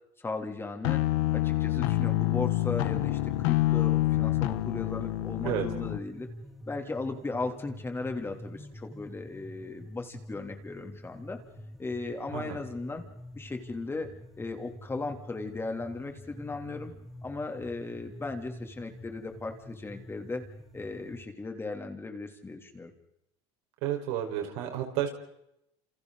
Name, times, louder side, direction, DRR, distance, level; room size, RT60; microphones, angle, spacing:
voice 1, 0.2-1.0 1.3-6.3 6.7-11.4 11.8-13.0 13.3-14.1 14.4-16.9 17.2-20.4 20.7-22.9, left 3 dB, 15° left, 4 dB, 3.4 m, -37 dB
sound 1, 0.8-6.0, left 17 dB, 80° left, 1.3 m, -27 dB
sound 2, 2.3-21.3, equal, ahead, 2.5 m, -47 dB
voice 2, 23.8-25.1, right 11 dB, 75° right, 3 dB, 5.3 m, -31 dB
29.5 x 28.5 x 4.2 m, 0.81 s
supercardioid pair, 110°, 14 cm